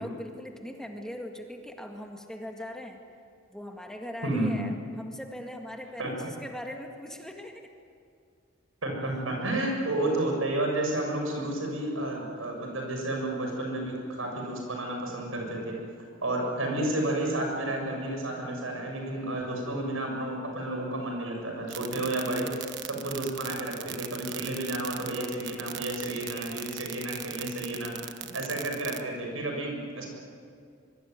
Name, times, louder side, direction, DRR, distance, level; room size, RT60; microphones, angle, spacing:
voice 1, 0.0-3.0 3.5-7.7, left 1 dB, 5° left, 2 dB, 1.9 m, -40 dB
voice 2, 4.2-4.6 6.0-6.1 8.8-15.8 16.2-28.0 28.3-30.1, right 1 dB, 80° right, 1 dB, 7.4 m, -31 dB
sound 1, 21.7-29.0, right 12 dB, 60° right, 1.2 m, -38 dB
25.0 x 23.0 x 9.5 m, 2.3 s
head